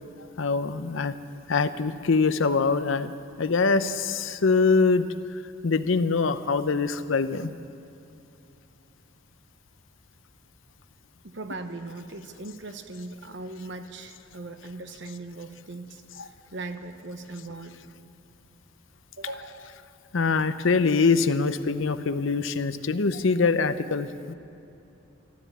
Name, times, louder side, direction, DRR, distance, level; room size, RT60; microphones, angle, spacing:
voice 1, 0.4-1.2 1.5-3.1 3.4-5.1 5.6-7.5 16.2-16.3 20.1-24.3, left 4 dB, 70° left, 12 dB, 0.6 m, -24 dB
voice 2, 11.2-17.8 19.2-19.8, right 2 dB, 55° right, 8 dB, 0.9 m, -39 dB
13.5 x 12.5 x 8.3 m, 2.8 s
head